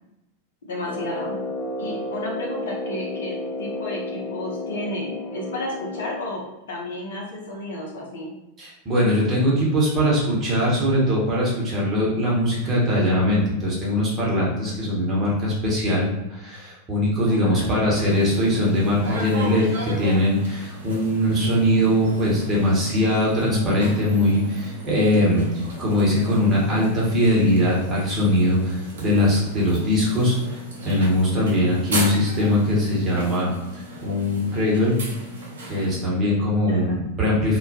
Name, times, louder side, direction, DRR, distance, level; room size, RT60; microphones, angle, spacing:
voice 1, 0.6-1.4 1.8-8.3 17.3-17.7 36.7-37.0, left 1 dB, 60° left, -2 dB, 0.6 m, -32 dB
Brass instrument, 0.8-6.4, left 2 dB, 15° left, 0.3 m, -32 dB
voice 2, 8.6-19.6 20.0-35.0 35.7-37.6, left 1 dB, 25° right, -5 dB, 0.9 m, -21 dB
sound 1, 18.1-36.0, right 1 dB, 60° right, 0.5 m, -36 dB
2.2 x 2.1 x 2.8 m, 0.94 s
figure-of-eight pair, 90°, 0 cm